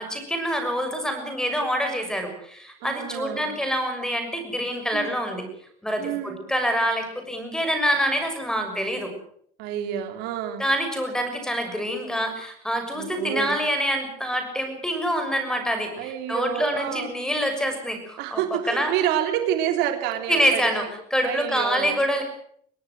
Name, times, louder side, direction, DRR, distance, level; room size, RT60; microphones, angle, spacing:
voice 1, 0.0-5.4 5.8-9.1 10.6-18.4 18.7-18.9 20.3-22.2, equal, 5° left, 6 dB, 6.5 m, -26 dB
voice 2, 2.8-3.5 4.9-5.1 6.0-6.4 9.6-10.6 13.0-13.6 16.0-17.1 18.2-20.7 21.2-22.0, right 10 dB, 75° right, 7 dB, 3.3 m, -28 dB
23.0 x 18.0 x 7.8 m, 0.64 s
cardioid pair, 135°, 17 cm